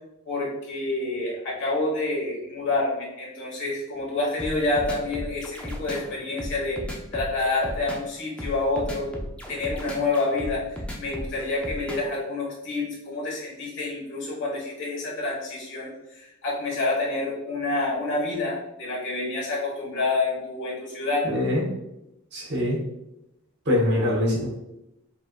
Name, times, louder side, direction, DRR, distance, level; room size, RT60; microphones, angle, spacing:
voice 1, 0.2-9.1 9.5-21.3, left 2 dB, 60° left, -4 dB, 1.4 m, -28 dB
sound 1, 4.4-12.2, equal, 5° left, 0.5 m, -35 dB
voice 2, 21.2-21.6 22.3-22.8 23.6-24.5, left 1 dB, 55° right, -3 dB, 1.3 m, -23 dB
5.3 x 2.9 x 2.4 m, 0.88 s
head